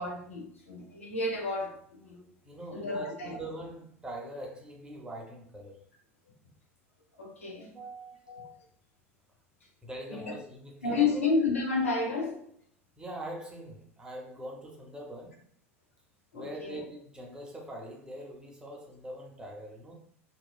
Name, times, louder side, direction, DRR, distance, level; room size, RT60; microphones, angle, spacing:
voice 1, 0.0-2.2 2.7-3.4 7.2-7.7 8.3-8.5 10.1-10.2 10.8-12.4 16.3-16.8, left 4 dB, 75° left, 0.7 m, -31 dB
voice 2, 2.4-5.8 7.7-8.4 9.8-11.3 13.0-15.4 16.3-19.9, right 1 dB, 10° right, 0.6 m, -43 dB
2.8 x 2.3 x 2.3 m
figure-of-eight pair, 75°, 7 cm